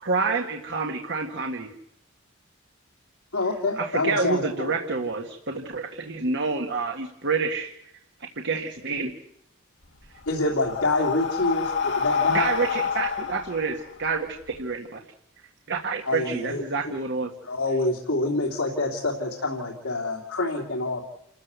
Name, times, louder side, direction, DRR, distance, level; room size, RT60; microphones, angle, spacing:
voice 1, 0.0-1.7 3.8-7.7 8.2-9.1 12.3-15.0 15.7-17.3, right 4 dB, 55° right, 4 dB, 1.7 m, -28 dB
voice 2, 3.3-4.7 10.3-12.5 16.1-16.6 17.4-21.0, left 2 dB, 80° left, -1 dB, 3.1 m, -26 dB
Breathing, 9.8-14.6, left 6 dB, 60° left, 1.9 m, -28 dB
29.0 x 14.5 x 8.3 m, 0.80 s
head